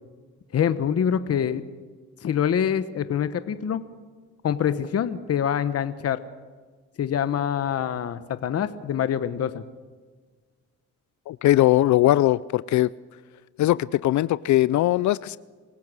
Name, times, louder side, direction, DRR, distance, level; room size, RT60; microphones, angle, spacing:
voice 1, 0.5-1.6 2.2-3.8 4.4-6.2 7.0-9.6, left 8 dB, 50° left, 12 dB, 1.1 m, -25 dB
voice 2, 11.3-12.9 13.6-15.4, left 15 dB, 70° left, 19 dB, 0.5 m, -20 dB
26.0 x 16.0 x 6.3 m, 1.5 s
cardioid pair, 90°, 30 cm